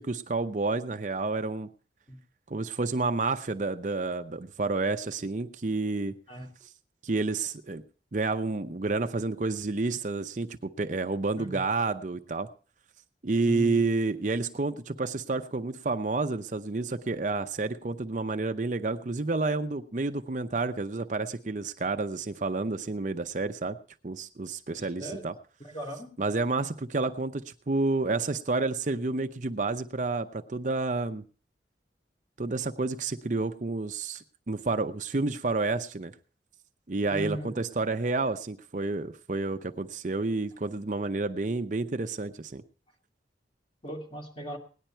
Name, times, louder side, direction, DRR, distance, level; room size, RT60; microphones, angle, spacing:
voice 1, 0.0-1.7 2.5-6.2 7.0-7.8 8.1-12.5 13.2-23.8 24.0-25.3 26.2-31.2 32.4-36.1 36.9-42.6, right 3 dB, 45° right, 8 dB, 0.6 m, -30 dB
voice 2, 13.4-13.8 25.0-25.3 25.6-26.1 37.1-37.6 43.8-44.6, right 1 dB, 30° left, 1 dB, 2.4 m, -38 dB
18.0 x 10.5 x 4.4 m, 0.40 s
head